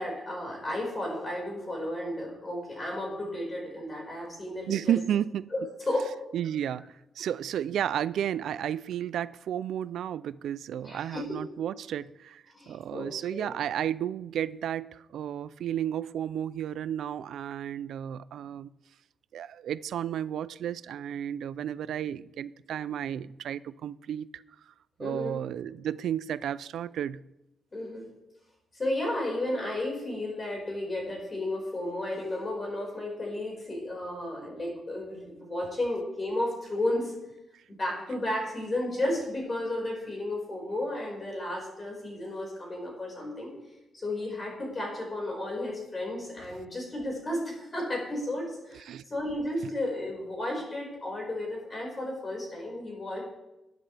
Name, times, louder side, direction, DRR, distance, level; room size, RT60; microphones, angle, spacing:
voice 1, 0.0-4.9 5.5-5.6 5.9-6.1 10.8-11.4 12.5-13.5 25.0-25.4 27.7-28.0 28.7-37.1 37.7-43.5 43.9-53.2, left 1 dB, 25° left, -1 dB, 5.2 m, -33 dB
voice 2, 4.7-5.5 6.3-18.7 19.3-24.4 25.0-27.2 48.9-49.0, right 10 dB, 85° right, 17 dB, 0.4 m, -32 dB
20.0 x 10.0 x 3.4 m, 0.92 s
wide cardioid pair, 155°, 0 cm